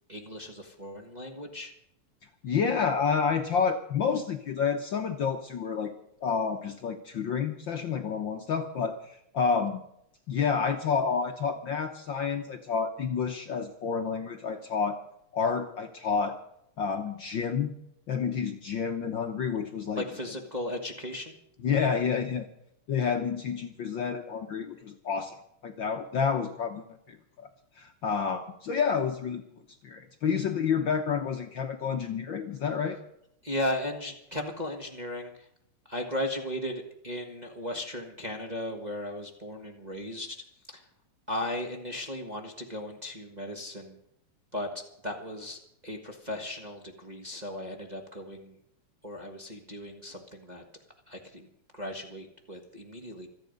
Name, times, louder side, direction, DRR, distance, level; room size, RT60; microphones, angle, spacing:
voice 1, 0.1-1.7 20.0-21.3 33.4-35.5 35.9-40.8 41.3-44.0 44.5-44.7 45.0-48.6 49.0-50.6 51.1-53.3, left 1 dB, 30° right, 2 dB, 0.8 m, -36 dB
voice 2, 2.4-5.9 6.2-9.8 10.3-15.0 15.3-16.4 16.8-17.8 18.1-20.0 21.6-22.5 22.9-25.4 25.6-27.5 27.8-29.4 29.8-33.0, left 6 dB, 65° left, 5 dB, 1.2 m, -29 dB
26.5 x 9.0 x 5.3 m, 0.74 s
omnidirectional pair, 3.4 m